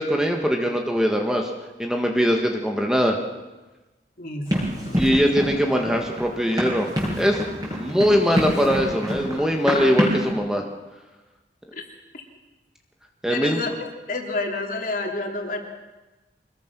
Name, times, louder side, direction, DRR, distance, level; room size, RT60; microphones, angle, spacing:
voice 1, 0.0-1.5 1.8-3.2 4.9-6.9 7.2-10.6 13.2-13.6, equal, 5° right, 2 dB, 1.6 m, -22 dB
voice 2, 4.2-5.2 11.7-11.8 13.3-13.7 14.1-15.6, left 2 dB, 50° left, 2 dB, 3.4 m, -30 dB
Run, 4.5-10.3, equal, 20° right, 7.0 m, -26 dB
25.0 x 20.5 x 6.1 m, 1.1 s
head